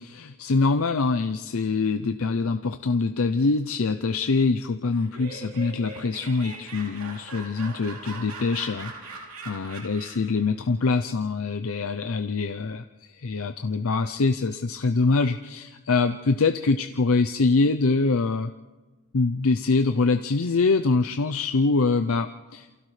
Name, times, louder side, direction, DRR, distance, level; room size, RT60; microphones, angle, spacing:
voice 1, 0.0-18.5 19.1-22.7, left 3 dB, 70° left, 8 dB, 0.6 m, -24 dB
Laughter, 4.9-10.4, right 3 dB, 75° right, 3.0 m, -41 dB
28.0 x 28.0 x 3.3 m, 1.2 s
head